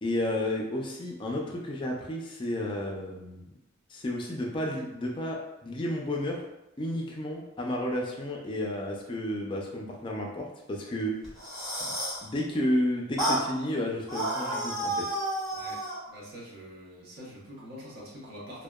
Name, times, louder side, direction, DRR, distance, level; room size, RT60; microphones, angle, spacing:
voice 1, 0.0-3.5 3.9-6.4 6.8-11.2 11.8-12.0 12.2-15.1, left 1 dB, 25° left, -1 dB, 0.4 m, -32 dB
sound 1, 11.2-12.2 13.2-13.5 14.1-16.0, right 1 dB, ahead, 1.0 m, -31 dB
voice 2, 16.1-18.6, equal, 50° right, -5 dB, 0.7 m, -45 dB
2.7 x 2.1 x 2.2 m, 0.91 s
head